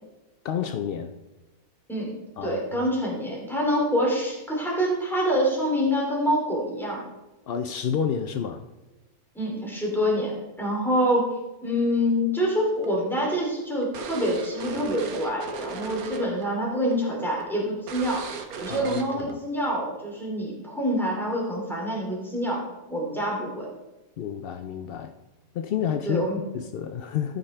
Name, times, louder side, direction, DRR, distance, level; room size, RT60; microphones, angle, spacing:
voice 1, 0.4-1.1 2.4-2.8 7.5-8.6 18.7-19.4 24.2-25.1 25.5-26.3 26.5-27.4, left 8 dB, 75° left, 8 dB, 0.5 m, -30 dB
voice 2, 2.4-7.0 9.3-11.3 11.6-18.3 18.6-22.6 22.9-23.7 26.1-26.4, equal, ahead, -3 dB, 2.8 m, -26 dB
sound 1, 12.8-16.5 16.7-17.0 17.4-17.5 17.9-19.3, right 5 dB, 85° right, 1.3 m, -37 dB
13.5 x 5.4 x 4.4 m, 1.1 s
omnidirectional pair, 1.5 m